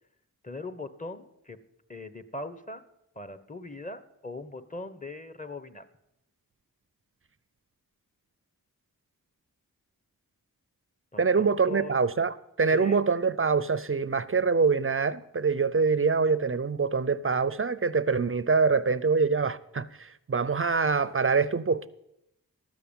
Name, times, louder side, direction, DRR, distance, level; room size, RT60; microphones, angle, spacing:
voice 1, 0.4-1.6 1.9-2.8 3.1-5.8 11.1-12.0 12.7-13.0, left 2 dB, 20° left, 1.1 m, -40 dB
voice 2, 11.2-21.9, right 5 dB, 35° right, 0.5 m, -25 dB
13.0 x 7.0 x 8.8 m
cardioid pair, 50°, 36 cm